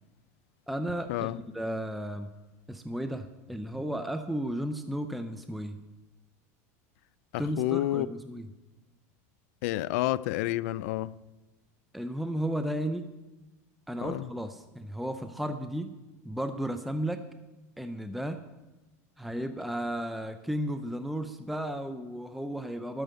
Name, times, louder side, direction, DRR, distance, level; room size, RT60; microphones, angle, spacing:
voice 1, 0.7-2.3 2.7-5.8 7.4-8.5 11.9-13.0 13.9-15.9 16.2-17.3 17.8-18.4 19.2-23.0, right 1 dB, ahead, 0.5 m, -34 dB
voice 2, 7.3-8.1 9.6-11.2 14.0-14.3, left 16 dB, 70° left, 0.4 m, -29 dB
12.5 x 6.4 x 9.1 m
supercardioid pair, 130°, 8 cm